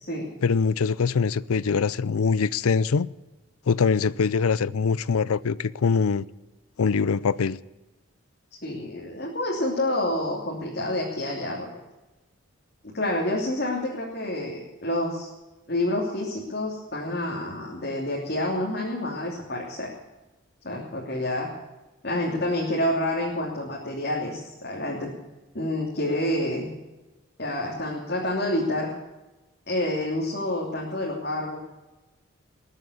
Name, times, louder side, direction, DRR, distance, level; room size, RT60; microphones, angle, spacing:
voice 1, 0.4-3.1 3.7-6.3 6.8-7.6, left 5 dB, 85° left, 0.5 m, -23 dB
voice 2, 8.6-11.7 12.8-15.3 15.7-19.9 20.6-21.5 22.0-25.1 25.5-26.7 27.4-28.9 29.7-31.6, left 1 dB, 50° left, 3.0 m, -28 dB
20.0 x 8.3 x 8.5 m
head